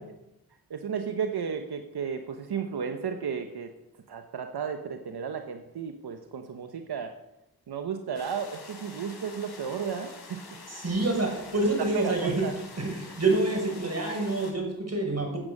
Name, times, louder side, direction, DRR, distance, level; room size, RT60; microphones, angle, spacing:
voice 1, 0.7-3.7 4.1-7.1 7.7-10.4 11.9-12.5, right 6 dB, 90° right, 6 dB, 1.1 m, -33 dB
sound 1, 8.1-14.5, left 3 dB, 85° left, 4.6 m, -46 dB
voice 2, 10.7-12.5 12.8-15.4, right 2 dB, 40° right, 1 dB, 6.1 m, -27 dB
16.0 x 8.4 x 6.5 m, 0.87 s
cardioid pair, 45°, 38 cm